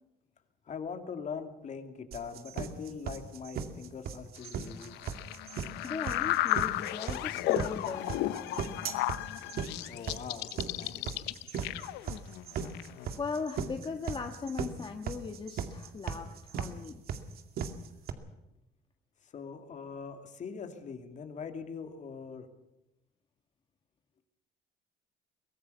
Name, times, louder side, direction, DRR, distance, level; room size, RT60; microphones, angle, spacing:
voice 1, 0.7-5.0 9.8-11.2 19.2-22.5, left 6 dB, 45° left, 6 dB, 2.7 m, -42 dB
sound 1, 2.1-18.1, right 7 dB, 65° right, 2.2 m, -37 dB
sound 2, 4.4-13.4, left 16 dB, 90° left, 0.7 m, -34 dB
voice 2, 5.8-8.8 12.6-12.9 13.2-17.0, left 5 dB, 30° left, 5 dB, 1.5 m, -39 dB
23.5 x 17.5 x 7.0 m, 0.89 s
cardioid pair, 110°, 17 cm